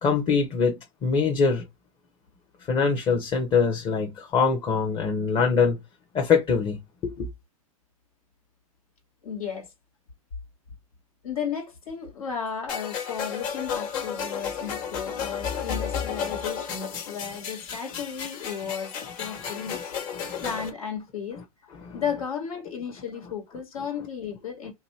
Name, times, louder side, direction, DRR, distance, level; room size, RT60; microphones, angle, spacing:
voice 1, 0.0-1.6 2.7-5.8 6.1-6.8 7.0-7.3 20.1-20.4 21.8-22.0, left 5 dB, 30° left, 0.9 m, -23 dB
voice 2, 9.2-9.7 11.2-21.4 21.9-24.7, left 7 dB, 85° left, 1.9 m, -34 dB
sound 1, 12.7-20.7, left 7 dB, 45° left, 1.5 m, -33 dB
2.9 x 2.7 x 4.2 m
hypercardioid pair, 120°, 18 cm